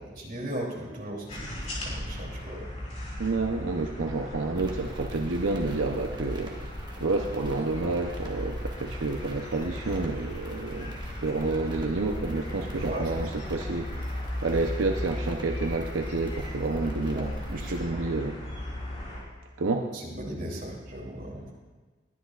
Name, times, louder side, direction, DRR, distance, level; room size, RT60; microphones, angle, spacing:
voice 1, 0.0-2.6 12.9-13.2 17.1-17.6 19.9-21.5, right 1 dB, 45° right, -3 dB, 3.0 m, -37 dB
sound 1, 1.3-19.2, left 1 dB, 35° left, 4.5 m, -37 dB
voice 2, 3.2-6.5 7.0-13.9 14.4-18.4 19.6-19.9, right 3 dB, 90° right, 2 dB, 0.7 m, -29 dB
sound 2, 4.6-17.8, equal, 25° right, 1.2 m, -44 dB
21.5 x 10.0 x 2.4 m, 1.3 s
head